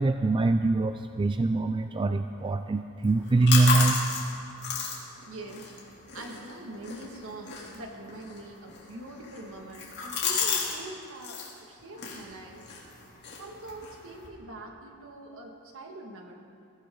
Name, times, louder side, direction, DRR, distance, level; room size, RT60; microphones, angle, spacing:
voice 1, 0.0-4.0, right 3 dB, 20° right, 9 dB, 0.3 m, -24 dB
sound 1, 3.0-10.8 11.0-11.5 11.9-14.3, left 5 dB, 50° left, 2.8 m, -34 dB
voice 2, 5.3-5.7 6.1-12.6 13.4-16.3, right 1 dB, 65° right, 1 dB, 2.0 m, -43 dB
20.5 x 15.0 x 3.9 m, 2.5 s
head